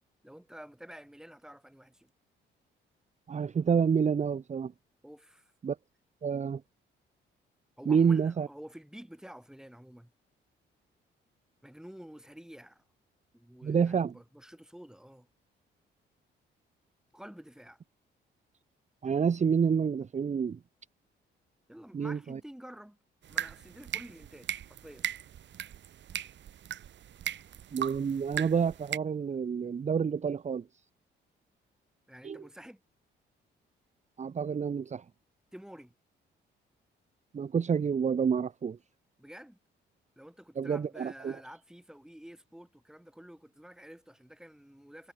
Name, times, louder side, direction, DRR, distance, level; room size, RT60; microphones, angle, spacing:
voice 1, 0.2-2.1 5.0-5.5 7.8-10.1 11.6-12.8 13.3-15.3 17.1-17.8 21.7-23.0 23.3-25.1 32.1-32.8 35.5-35.9 39.2-39.6 40.2-45.1, equal, 5° right, 5.6 m, -50 dB
voice 2, 3.3-4.7 5.6-5.8 6.2-6.6 7.9-8.5 13.6-14.1 19.0-20.6 21.9-22.4 27.7-30.6 32.2-32.4 34.2-35.0 37.3-38.8 40.6-41.4, right 6 dB, 35° right, 1.1 m, -28 dB
sound 1, 23.2-29.0, right 10 dB, 65° right, 2.5 m, -38 dB
cardioid pair, 90°, 20 cm